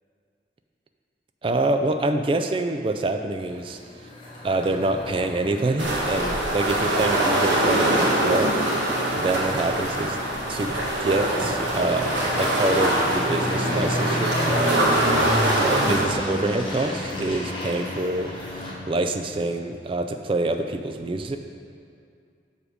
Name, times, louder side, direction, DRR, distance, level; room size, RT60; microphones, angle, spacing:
voice 1, 1.4-3.8 4.4-8.6 9.1-10.2 10.5-15.3 15.6-21.4, right 2 dB, 30° right, 7 dB, 0.3 m, -26 dB
sound 1, 3.4-18.7, left 1 dB, 25° left, 1.0 m, -32 dB
sound 2, 5.8-16.0, right 1 dB, 85° right, 1.3 m, -23 dB
6.3 x 4.9 x 5.0 m, 2.4 s
head